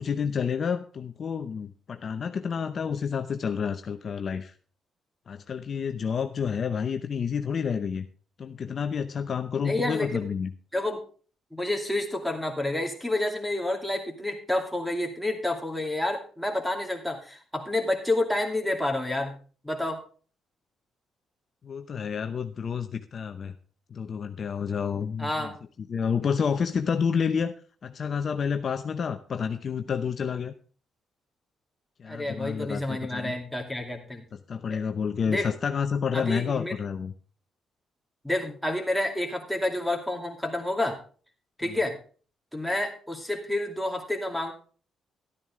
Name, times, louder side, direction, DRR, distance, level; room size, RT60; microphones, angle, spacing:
voice 1, 0.0-4.5 5.3-8.1 8.4-10.5 21.6-23.5 23.9-25.5 25.9-27.5 27.8-30.5 32.0-33.3 34.3-37.1 41.6-41.8, left 6 dB, 50° left, 8 dB, 0.7 m, -29 dB
voice 2, 9.6-10.3 10.7-11.0 11.5-19.3 19.6-20.0 25.2-25.5 32.1-34.2 34.7-34.8 35.3-35.5 36.1-36.7 38.2-41.0 41.6-42.0 42.5-44.5, left 1 dB, ahead, 1 dB, 2.5 m, -29 dB
12.5 x 9.8 x 3.6 m, 0.40 s
cardioid pair, 90°, 0 cm